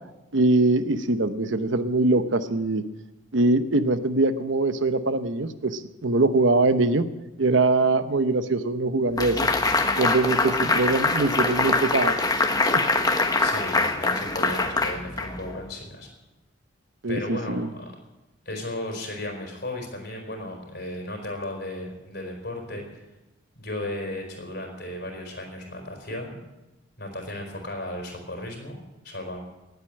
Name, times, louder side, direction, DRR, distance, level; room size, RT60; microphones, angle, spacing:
voice 1, 0.3-2.8 3.3-7.1 7.4-9.4 10.0-12.1 12.7-12.8 17.0-17.7, right 2 dB, 65° right, 11 dB, 0.9 m, -22 dB
sound 1, 9.2-15.6, left 3 dB, 20° left, 1.1 m, -24 dB
voice 2, 13.4-16.1 17.1-17.9 18.4-23.0 23.6-26.4 27.0-28.8 29.0-29.4, left 1 dB, 50° left, 2 dB, 4.4 m, -35 dB
19.0 x 8.2 x 8.9 m, 1.0 s
head